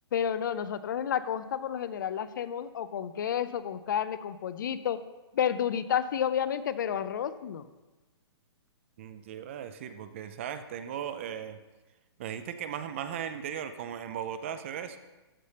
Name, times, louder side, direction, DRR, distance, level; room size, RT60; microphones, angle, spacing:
voice 1, 0.1-5.0 5.3-7.6, left 9 dB, 45° left, 14 dB, 0.4 m, -30 dB
voice 2, 9.0-11.6 12.2-15.0, right 9 dB, 30° right, 11 dB, 0.4 m, -37 dB
13.5 x 5.4 x 3.4 m, 1.2 s
hypercardioid pair, 165°, 14 cm